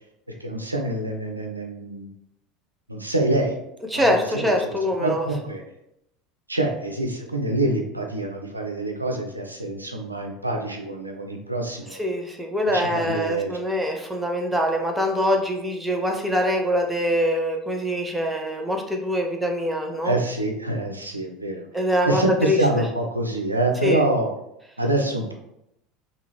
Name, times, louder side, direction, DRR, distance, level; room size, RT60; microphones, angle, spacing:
voice 1, 0.4-2.1 2.9-3.6 3.9-5.6 6.5-12.1 12.7-13.5 20.0-21.7 22.1-24.3 24.8-25.3, right 2 dB, 85° right, 2 dB, 0.4 m, -26 dB
voice 2, 3.9-5.3 12.0-20.1 21.7-22.6 23.8-24.0, equal, 5° right, 2 dB, 0.6 m, -24 dB
3.5 x 2.3 x 3.0 m, 0.82 s
figure-of-eight pair, 70°, 0 cm